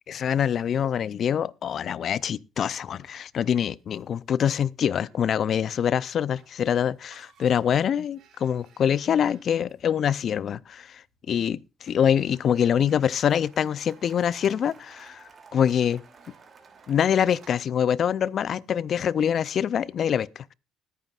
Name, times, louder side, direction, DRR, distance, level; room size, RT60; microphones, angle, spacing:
voice 1, 0.1-15.2 15.5-16.0 16.9-20.5, left 8 dB, 55° left, 0.5 m, -25 dB
sound 1, 1.9-19.2, right 7 dB, 70° right, 4.8 m, -63 dB
Cheering / Applause, 12.1-17.5, right 5 dB, 40° right, 2.7 m, -54 dB
20.5 x 9.2 x 2.4 m
supercardioid pair, 65°, 0 cm